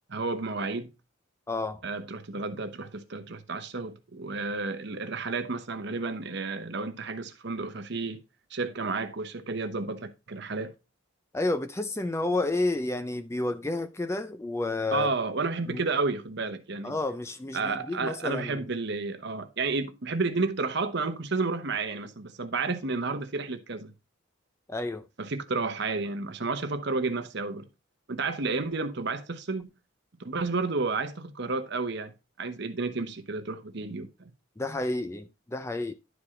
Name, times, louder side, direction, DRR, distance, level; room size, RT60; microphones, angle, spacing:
voice 1, 0.1-0.9 1.8-8.2 8.5-10.7 14.9-16.9 17.5-23.9 25.2-27.6 28.1-29.7 30.2-32.1 32.4-34.3, right 3 dB, 55° right, 0.9 m, -31 dB
voice 2, 1.5-1.8 11.3-15.1 15.7-15.8 16.8-18.7 24.7-25.1 34.6-35.9, left 2 dB, 15° left, 0.4 m, -30 dB
11.0 x 4.8 x 3.7 m
head